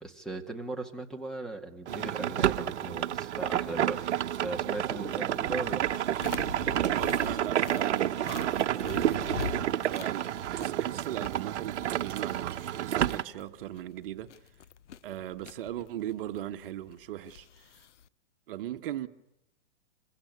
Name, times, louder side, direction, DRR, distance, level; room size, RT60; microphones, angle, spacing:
voice 1, 0.0-4.1 4.4-5.8, right 2 dB, ahead, 2.0 m, -38 dB
sound 1, 1.9-13.2, right 11 dB, 65° right, 1.1 m, -30 dB
sound 2, 5.9-18.1, left 8 dB, 75° left, 1.0 m, -44 dB
voice 2, 6.9-14.3 15.0-17.7 18.5-19.1, right 12 dB, 50° right, 1.5 m, -39 dB
27.0 x 16.5 x 9.8 m
hypercardioid pair, 150°, 36 cm